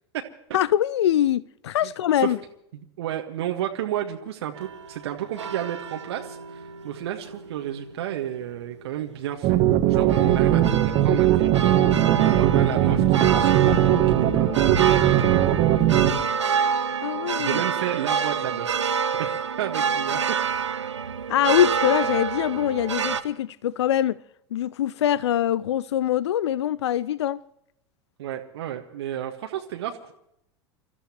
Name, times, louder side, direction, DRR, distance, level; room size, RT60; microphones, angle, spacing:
voice 1, 0.5-2.4 17.0-17.6 21.3-24.2 24.5-27.4, left 11 dB, 70° left, 0.5 m, -23 dB
voice 2, 1.8-2.3 2.7-15.4 15.7-15.9 17.4-18.8 19.2-20.2 28.2-30.1, right 11 dB, 65° right, 1.5 m, -32 dB
sound 1, 4.6-23.2, right 6 dB, 80° right, 1.0 m, -28 dB
sound 2, 9.4-16.1, right 12 dB, 45° right, 1.6 m, -19 dB
29.0 x 14.5 x 3.0 m
figure-of-eight pair, 85°, 15 cm